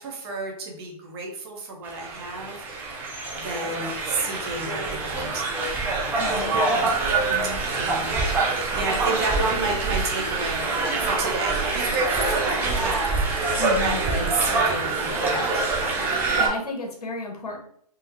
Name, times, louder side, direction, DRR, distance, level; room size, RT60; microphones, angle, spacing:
voice 1, 0.0-2.7 3.3-5.5 7.8-8.2 8.5-15.7, right 3 dB, 40° right, 0 dB, 1.0 m, -31 dB
sound 1, 1.8-16.5, right 3 dB, 10° right, 0.4 m, -25 dB
voice 2, 6.2-6.9 7.3-7.6 13.6-14.1 16.1-17.6, left 3 dB, 75° left, 1 dB, 1.1 m, -33 dB
3.7 x 2.4 x 3.0 m, 0.66 s
hypercardioid pair, 145°, 20 cm